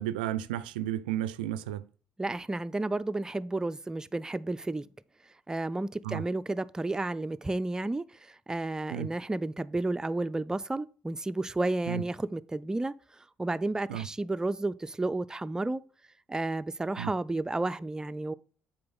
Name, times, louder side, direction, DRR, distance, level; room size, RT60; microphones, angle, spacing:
voice 1, 0.0-1.9 6.0-6.2 8.9-9.1 11.9-12.0 13.9-14.1 17.0-17.1, right 12 dB, 85° right, 0.3 m, -33 dB
voice 2, 2.2-4.9 5.5-15.8 16.3-18.3, right 2 dB, 15° right, 0.4 m, -32 dB
7.6 x 4.4 x 4.0 m
hypercardioid pair, 55°, 5 cm